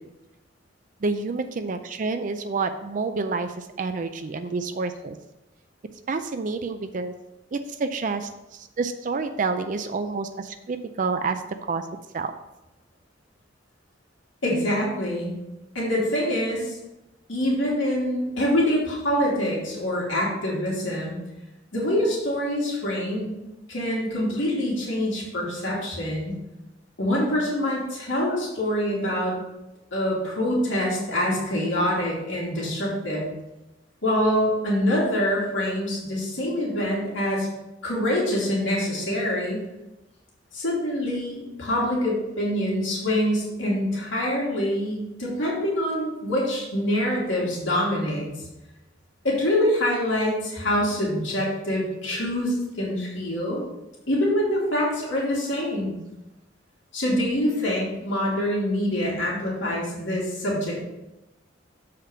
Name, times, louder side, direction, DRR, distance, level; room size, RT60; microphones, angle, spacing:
voice 1, 1.0-5.2 6.1-7.1 7.5-11.9 12.1-12.3 24.3-24.4 45.2-45.3, right 4 dB, 40° right, 8 dB, 0.4 m, -29 dB
voice 2, 14.4-15.3 15.7-16.8 17.3-21.2 21.7-23.4 23.7-26.4 27.0-29.3 29.9-33.3 34.0-37.5 37.8-39.6 40.5-48.3 49.2-53.6 54.1-56.0 56.9-60.8, left 1 dB, 80° left, -5 dB, 2.6 m, -25 dB
7.3 x 5.0 x 5.6 m, 0.96 s
head